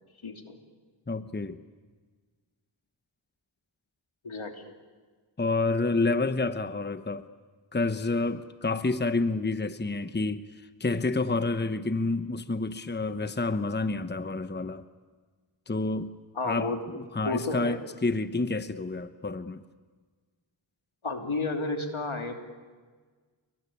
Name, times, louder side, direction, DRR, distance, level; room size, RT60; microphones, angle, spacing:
voice 1, 0.2-0.6 4.2-4.8 16.3-16.8 17.2-17.8 21.0-22.3, left 3 dB, 75° left, 3.2 m, -32 dB
voice 2, 1.1-1.6 5.4-7.3 7.7-10.4 10.8-14.8 15.7-16.1 16.4-19.6, left 3 dB, 20° left, 1.1 m, -29 dB
28.5 x 23.5 x 8.7 m
cardioid pair, 45°, 49 cm